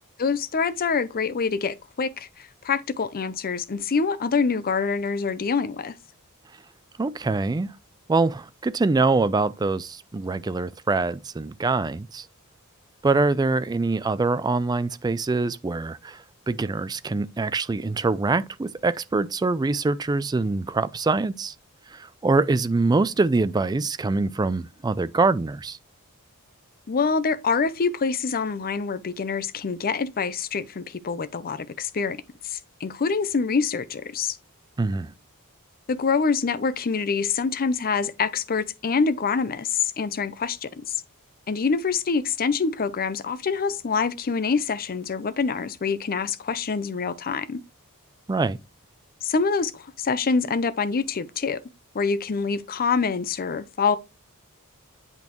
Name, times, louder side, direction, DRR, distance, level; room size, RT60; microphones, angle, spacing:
voice 1, 0.2-5.9 26.9-32.2 32.4-34.4 35.9-41.0 41.5-47.6 49.2-51.6 51.9-54.0, left 5 dB, 40° left, 0.5 m, -25 dB
voice 2, 7.0-7.7 8.1-12.3 13.0-21.5 21.9-25.8 34.8-35.1 48.3-48.6, right 3 dB, 20° right, 0.3 m, -24 dB
8.3 x 5.2 x 3.0 m
head